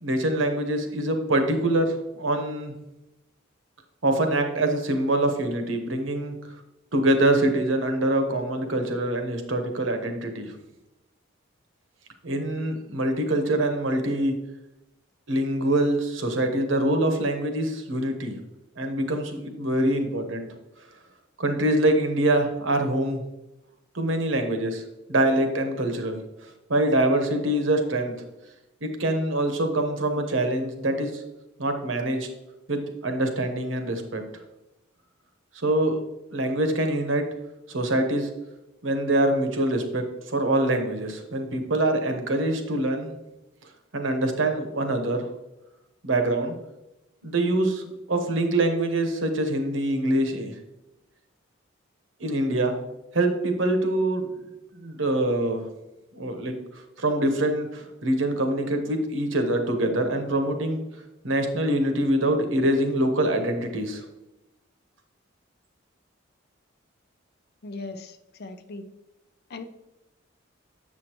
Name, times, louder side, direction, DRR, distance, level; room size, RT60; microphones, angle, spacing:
voice 1, 0.0-2.7 4.0-6.4 6.9-10.5 12.2-14.3 15.3-18.4 18.8-20.5 21.4-23.2 23.9-24.8 25.1-26.2 26.7-28.2 28.8-31.2 31.6-32.3 32.7-34.2 35.6-36.0 36.3-37.3 37.7-38.3 38.8-43.1 43.9-45.3 46.0-46.5 47.2-50.5 52.2-52.7 53.1-54.3 54.7-55.7 56.1-56.6 57.0-60.8 61.2-64.0, right 1 dB, 70° right, 5 dB, 1.0 m, -24 dB
voice 2, 67.6-68.9 69.5-69.6, left 3 dB, 50° left, 10 dB, 0.5 m, -38 dB
7.3 x 6.4 x 3.0 m, 0.96 s
head